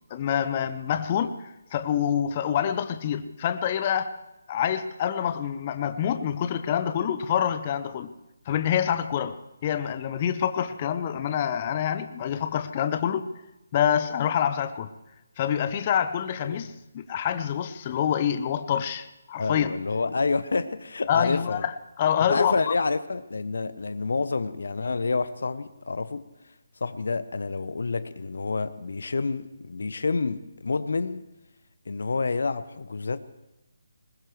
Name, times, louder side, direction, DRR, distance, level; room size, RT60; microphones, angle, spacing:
voice 1, 0.1-4.2 4.5-8.1 8.5-9.4 9.6-13.3 13.7-14.9 15.4-19.7 21.1-22.6, left 9 dB, 30° left, 0.7 m, -26 dB
voice 2, 19.4-21.7 22.3-26.3 26.8-31.2 31.9-33.2, left 4 dB, 65° left, 0.8 m, -28 dB
21.0 x 20.5 x 3.2 m
figure-of-eight pair, 150°, 0 cm